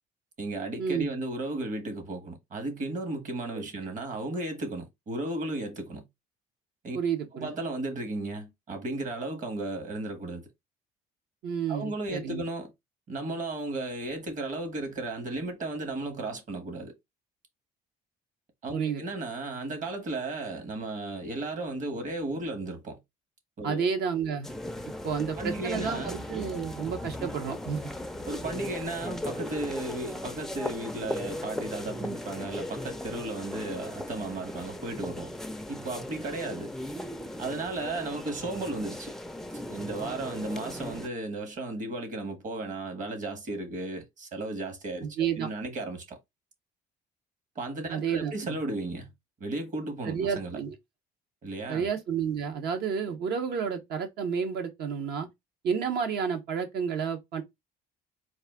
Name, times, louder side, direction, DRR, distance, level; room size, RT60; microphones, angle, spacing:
voice 1, 0.4-6.1 6.8-7.0 7.3-10.5 11.7-12.7 13.1-16.9 18.6-23.0 23.6-23.8 25.4-26.1 28.2-35.3 35.7-36.7 37.4-39.2 39.7-46.2 47.5-49.1 49.4-50.6 51.4-51.9, right 2 dB, 50° right, 1.5 m, -34 dB
voice 2, 6.9-7.5 11.4-12.4 18.7-19.0 23.6-24.5 25.0-27.9 45.2-45.5 47.9-48.6 50.0-50.7 51.7-55.3 55.6-57.4, right 7 dB, 70° right, 1.1 m, -30 dB
sound 1, 24.4-41.1, left 1 dB, 5° left, 0.4 m, -38 dB
4.1 x 2.5 x 3.7 m
cardioid pair, 110°, 17 cm